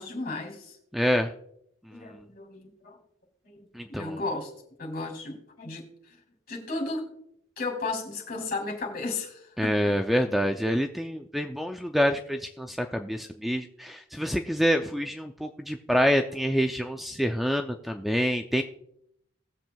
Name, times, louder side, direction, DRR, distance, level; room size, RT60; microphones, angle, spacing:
voice 1, 0.0-0.8 1.9-3.0 3.4-4.5 4.8-6.2 6.5-7.1 7.6-10.0, left 3 dB, 50° left, 1 dB, 2.8 m, -34 dB
voice 2, 0.9-1.3 3.7-4.2 9.6-18.6, equal, ahead, 5 dB, 0.4 m, -27 dB
19.5 x 7.5 x 2.3 m, 0.74 s
head